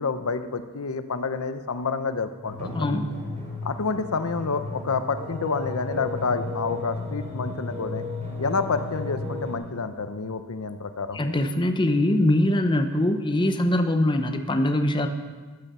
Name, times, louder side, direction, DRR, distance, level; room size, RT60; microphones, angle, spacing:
voice 1, 0.0-2.7 3.6-8.0 8.4-11.2, left 4 dB, 90° left, 10 dB, 0.7 m, -28 dB
sound 1, 2.4-9.6, left 2 dB, 35° right, 3.5 m, -34 dB
voice 2, 2.7-3.2 11.1-15.1, left 1 dB, 20° left, 6 dB, 0.7 m, -22 dB
14.5 x 9.1 x 5.5 m, 1.4 s
head